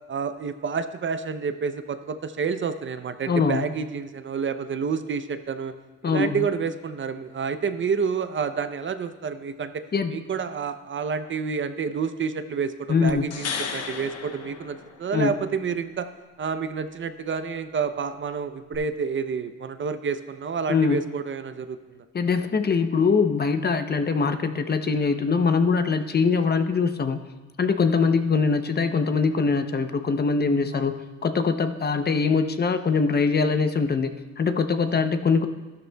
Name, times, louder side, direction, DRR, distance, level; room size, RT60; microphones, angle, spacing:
voice 1, 0.1-5.7 6.0-9.8 10.1-16.1 16.4-22.0 30.7-30.9 34.9-35.0, right 6 dB, 40° right, 10 dB, 0.6 m, -29 dB
voice 2, 3.3-3.7 6.0-6.5 9.9-10.2 12.9-13.3 15.1-15.4 20.7-21.0 22.1-27.2 27.6-35.5, left 5 dB, 35° left, 8 dB, 0.7 m, -23 dB
sound 1, 13.1-15.4 18.7-18.8, left 6 dB, 55° left, 1.0 m, -34 dB
13.0 x 12.0 x 2.3 m, 1.2 s
cardioid pair, 90°, 30 cm